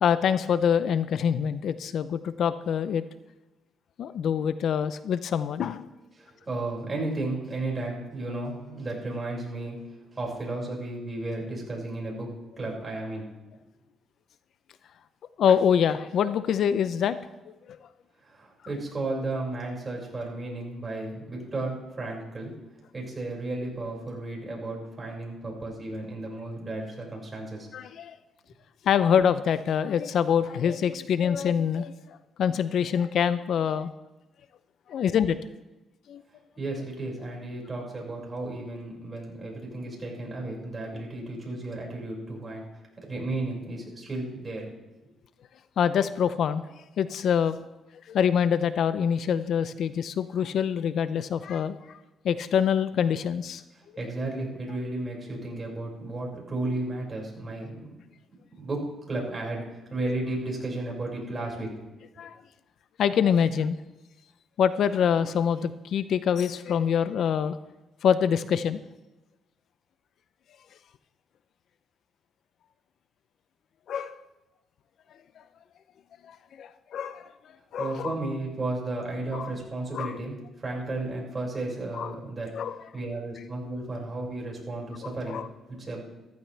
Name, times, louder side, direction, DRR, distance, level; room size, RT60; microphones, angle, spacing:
voice 1, 0.0-3.0 4.0-5.8 15.4-17.2 27.7-28.1 28.8-33.9 34.9-35.4 36.1-36.2 45.8-46.7 47.0-47.6 48.1-51.8 52.2-53.6 62.2-62.4 63.0-63.8 64.6-67.6 68.0-68.8 73.9-74.2 76.3-77.3 77.7-78.1 79.3-79.5 79.9-80.1 81.9-82.1 82.5-82.8 85.3-85.5, left 8 dB, 65° left, 13 dB, 0.6 m, -25 dB
voice 2, 6.2-9.8 10.1-12.3 12.6-13.3 18.2-22.5 22.9-27.7 36.6-42.6 43.1-44.7 53.7-57.9 58.6-61.7 77.8-85.4 85.7-86.0, right 2 dB, 25° right, -2 dB, 5.7 m, -33 dB
15.0 x 15.0 x 3.4 m, 1.0 s
cardioid pair, 90°, 0 cm